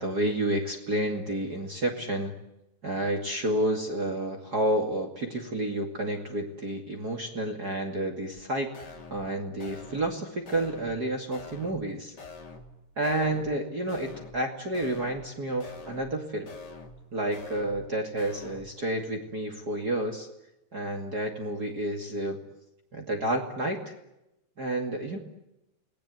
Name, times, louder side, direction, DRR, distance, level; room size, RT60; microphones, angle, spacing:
voice 1, 0.0-2.4 2.8-8.7 9.1-12.1 13.0-16.5 17.1-20.3 20.7-22.4 22.9-23.9 24.6-25.2, right 1 dB, 30° right, 3 dB, 2.3 m, -30 dB
sound 1, 8.4-8.5 8.7-9.3 9.6-10.2 10.5-11.0 11.3-11.9 12.2-12.7 13.0-13.6 13.9-14.5 14.7-15.3 15.6-16.2 16.5-17.0 17.3-17.9 18.2-18.7, left 3 dB, 30° left, 2.5 m, -45 dB
29.0 x 20.0 x 9.3 m, 0.92 s
omnidirectional pair, 4.6 m